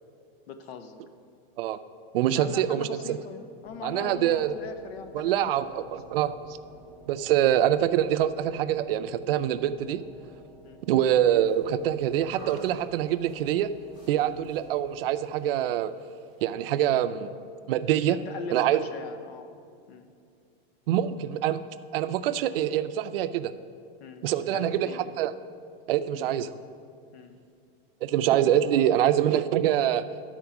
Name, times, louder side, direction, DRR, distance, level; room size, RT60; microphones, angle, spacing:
voice 1, 0.5-1.0 2.3-5.9 6.7-6.8 10.6-10.8 14.2-14.4 18.1-19.5 19.9-20.1 24.0-24.3 24.5-25.1 26.1-26.3 27.1-27.4, left 5 dB, 85° left, 8 dB, 0.9 m, -41 dB
voice 2, 2.1-2.9 3.8-4.6 5.1-6.3 7.1-10.0 10.9-13.7 14.1-15.9 16.4-17.4 17.7-18.2 18.5-18.8 20.9-21.6 21.9-23.5 24.2-24.9 25.2-25.3 25.9-26.5 28.0-30.0, right 11 dB, 65° right, 11 dB, 0.5 m, -25 dB
sound 1, 3.7-15.4, right 2 dB, ahead, 0.4 m, -52 dB
sound 2, 11.4-16.5, left 1 dB, 30° left, 1.5 m, -52 dB
12.0 x 4.4 x 5.8 m, 2.3 s
supercardioid pair, 180°, 31 cm